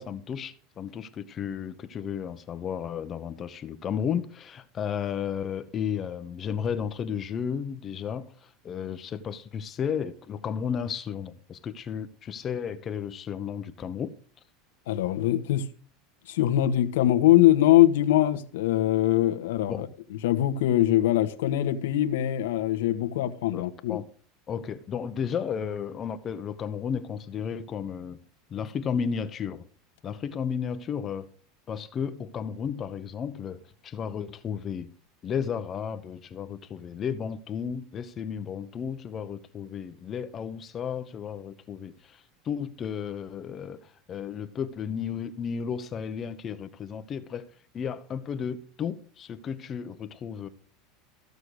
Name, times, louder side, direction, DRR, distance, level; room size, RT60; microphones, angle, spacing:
voice 1, 0.0-14.1 19.7-19.8 23.5-24.1 24.5-28.2 28.5-29.6 30.0-31.3 31.7-34.9 35.2-47.5 47.7-50.5, left 7 dB, 30° left, 1.0 m, -33 dB
voice 2, 14.9-15.7 16.3-19.9 20.2-24.0, left 13 dB, 85° left, 1.3 m, -22 dB
15.0 x 6.7 x 6.4 m
supercardioid pair, 125°, 0 cm